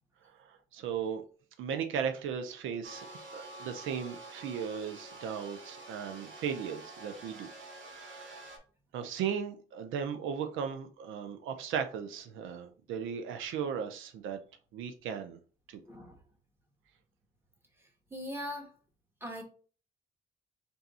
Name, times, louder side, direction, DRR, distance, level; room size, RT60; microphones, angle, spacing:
voice 1, 0.5-1.2 1.6-3.1 3.3-7.5 7.9-8.4 8.9-14.4 14.7-15.4 15.7-15.8, right 7 dB, 85° right, 0.5 m, -36 dB
sound 1, 2.8-8.6, right 2 dB, 70° right, 1.1 m, -48 dB
voice 2, 15.9-16.2 18.1-18.7 19.2-19.4, equal, 10° right, 1.3 m, -40 dB
3.4 x 2.7 x 4.1 m
cardioid pair, 90°, 20 cm